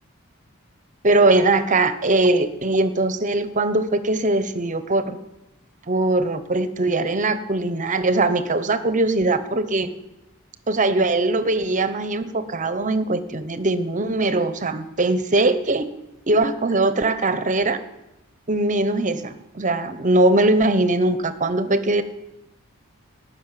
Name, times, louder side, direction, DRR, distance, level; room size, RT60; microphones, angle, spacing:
voice 1, 1.0-5.2 5.9-9.9 10.7-15.9 16.3-17.8 18.5-22.0, right 2 dB, 35° right, 12 dB, 0.9 m, -21 dB
18.5 x 6.5 x 9.1 m, 0.94 s
head